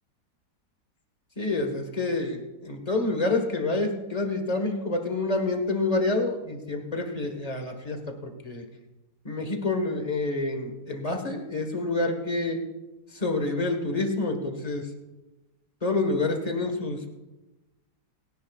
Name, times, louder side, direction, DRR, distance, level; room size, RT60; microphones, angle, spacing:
voice 1, 1.4-8.6 9.2-12.6 13.1-14.9 15.8-17.1, left 2 dB, 20° left, 4 dB, 1.4 m, -28 dB
29.5 x 10.5 x 2.4 m, 1.1 s
omnidirectional pair, 2.0 m